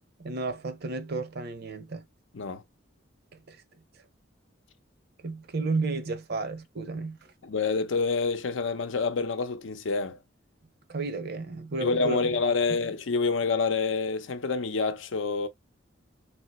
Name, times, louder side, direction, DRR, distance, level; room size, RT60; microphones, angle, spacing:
voice 1, 0.2-2.1 3.3-3.6 5.2-7.2 10.9-12.4, right 3 dB, 55° right, 0.6 m, -32 dB
voice 2, 7.4-10.2 11.8-15.5, left 4 dB, 85° left, 0.6 m, -27 dB
3.4 x 2.9 x 2.9 m
head